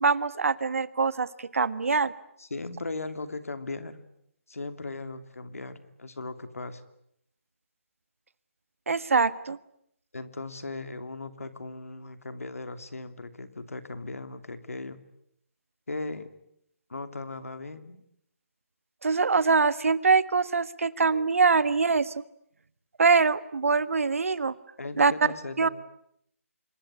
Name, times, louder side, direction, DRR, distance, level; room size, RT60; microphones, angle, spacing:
voice 1, 0.0-1.3 1.5-2.1 8.9-9.6 19.0-22.1 23.0-24.5 25.0-25.1 25.6-25.7, right 4 dB, 70° right, 15 dB, 1.5 m, -23 dB
voice 2, 2.4-4.0 4.5-6.8 10.1-15.0 15.9-16.3 16.9-18.0 24.8-25.7, left 3 dB, 90° left, 10 dB, 2.8 m, -38 dB
27.0 x 22.0 x 9.8 m, 0.74 s
hypercardioid pair, 160°, 8 cm